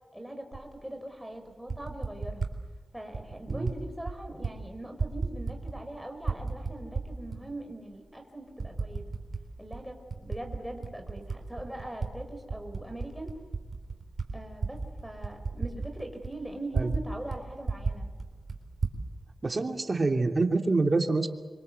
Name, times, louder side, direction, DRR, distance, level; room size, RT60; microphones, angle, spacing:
voice 1, 0.1-2.5 2.9-9.1 9.6-13.3 14.3-18.1, right 1 dB, 5° right, 3 dB, 5.2 m, -41 dB
Typing, 0.5-0.7 1.5-2.6 3.1-3.8 4.0-4.5 4.8-5.9 6.2-7.4 7.9-8.0 8.6-9.4 9.7-12.1 12.4-17.0 17.3-17.4 17.6-19.0, right 4 dB, 60° right, 4.0 m, -33 dB
voice 2, 19.4-21.3, right 3 dB, 45° right, 4 dB, 3.0 m, -26 dB
26.0 x 24.5 x 8.1 m, 1.3 s
cardioid pair, 45°, 0 cm